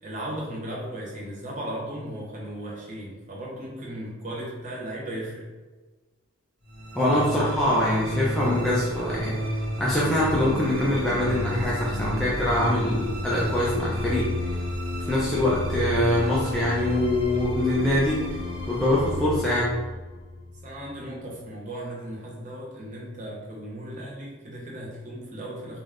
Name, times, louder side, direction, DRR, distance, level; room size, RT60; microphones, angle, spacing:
voice 1, 0.0-5.5 20.6-25.8, right 1 dB, 35° right, -4 dB, 0.7 m, -36 dB
sound 1, 6.7-21.1, left 1 dB, 85° right, 0.9 m, -32 dB
voice 2, 6.9-14.6 15.1-18.4 18.7-19.8, left 1 dB, ahead, -7 dB, 0.3 m, -24 dB
3.3 x 2.0 x 2.4 m, 1.2 s
head